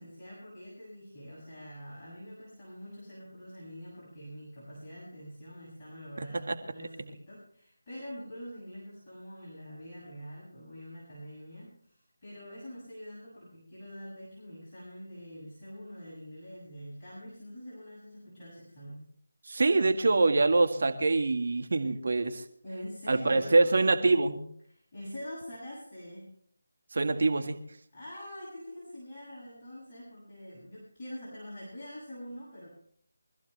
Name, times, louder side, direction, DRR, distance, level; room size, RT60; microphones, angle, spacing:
voice 1, 0.0-19.0 22.6-23.8 24.7-26.3 27.9-32.7, equal, 20° left, -10 dB, 7.1 m, -45 dB
voice 2, 19.5-22.4 23.1-24.4 26.9-27.6, right 3 dB, 55° right, 6 dB, 1.8 m, -25 dB
24.0 x 14.5 x 3.4 m, 0.62 s
figure-of-eight pair, 165°, 0 cm